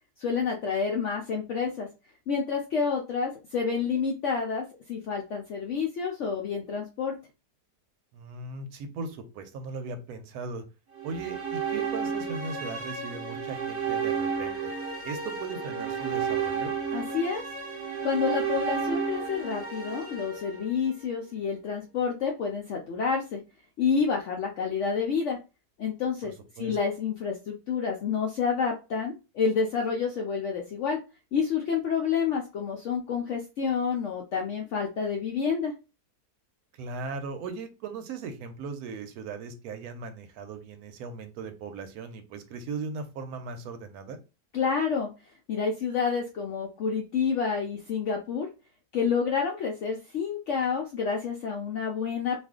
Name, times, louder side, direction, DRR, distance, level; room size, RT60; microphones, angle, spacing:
voice 1, 0.2-1.9 2.3-7.2 16.9-17.4 18.0-23.4 23.8-25.4 25.8-31.0 31.3-35.7 44.5-45.1 45.5-48.5 48.9-52.4, left 6 dB, 75° left, 1 dB, 0.6 m, -29 dB
voice 2, 8.1-10.6 11.0-14.7 15.0-16.7 26.2-26.8 36.8-44.2, right 4 dB, 70° right, 8 dB, 1.0 m, -38 dB
sound 1, 10.9-21.1, right 6 dB, 40° right, 0.9 m, -32 dB
2.5 x 2.4 x 3.5 m, 0.30 s
omnidirectional pair, 1.8 m